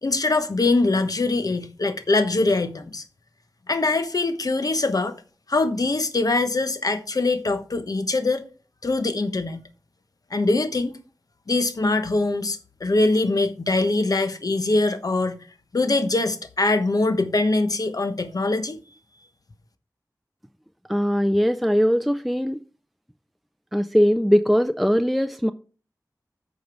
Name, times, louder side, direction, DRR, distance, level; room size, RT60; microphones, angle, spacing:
voice 1, 0.0-3.0 3.7-5.1 5.5-8.4 8.8-9.6 10.3-11.0 11.5-15.4 15.7-18.8, left 2 dB, 60° left, 1.1 m, -23 dB
voice 2, 20.9-22.6 23.7-25.5, equal, ahead, 0.4 m, -20 dB
9.0 x 5.2 x 4.8 m
wide cardioid pair, 60°, 7 cm